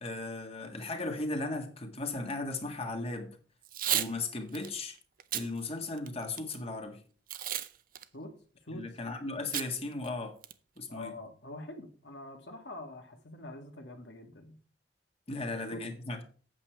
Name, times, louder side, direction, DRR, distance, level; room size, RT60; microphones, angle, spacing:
voice 1, 0.0-3.4 3.9-5.0 5.3-7.0 8.7-10.4 10.8-11.1 15.3-16.2, left 2 dB, 35° left, 1.6 m, -36 dB
Packing tape duct tape / Tearing, 3.6-4.1 4.5-4.7 5.2-5.5 6.0-6.6 7.3-7.7 8.0-8.1 9.5-9.7 10.0-10.1 10.4-10.8, right 12 dB, 50° right, 0.6 m, -32 dB
voice 2, 10.9-14.6 15.4-15.9, left 1 dB, 80° left, 1.8 m, -45 dB
8.4 x 7.2 x 4.6 m
head